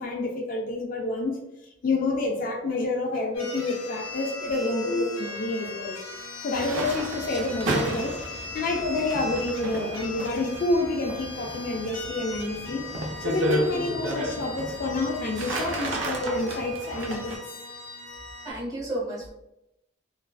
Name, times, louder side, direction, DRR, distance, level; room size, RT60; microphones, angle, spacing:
voice 1, 0.0-1.4 1.8-6.0 6.4-8.2 8.5-12.9 13.2-17.4, left 2 dB, 45° left, 0 dB, 0.3 m, -28 dB
sound 1, 3.3-18.5, left 3 dB, 90° left, 0.6 m, -39 dB
sound 2, 6.5-17.4, right 1 dB, 75° right, 0.5 m, -33 dB
voice 2, 18.1-19.3, right 1 dB, 20° right, -6 dB, 0.7 m, -34 dB
2.3 x 2.3 x 2.3 m, 0.88 s
head